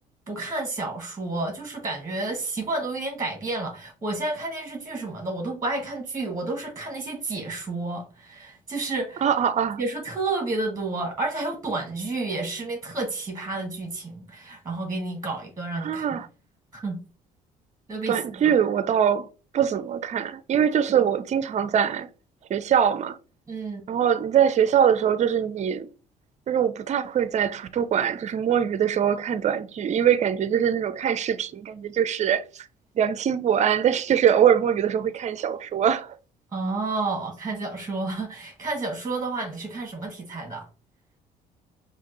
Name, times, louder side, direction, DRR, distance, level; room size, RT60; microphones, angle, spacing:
voice 1, 0.3-9.2 9.8-16.1 16.7-17.0 17.9-18.5 20.9-21.1 23.5-23.8 36.5-40.6, right 3 dB, 15° right, 1.4 m, -30 dB
voice 2, 9.2-9.8 15.8-16.3 18.1-19.3 19.5-22.1 22.5-23.2 23.9-25.9 26.5-32.7 33.0-36.1, right 8 dB, 35° right, 0.5 m, -23 dB
5.7 x 2.4 x 3.0 m
hypercardioid pair, 55°, 19 cm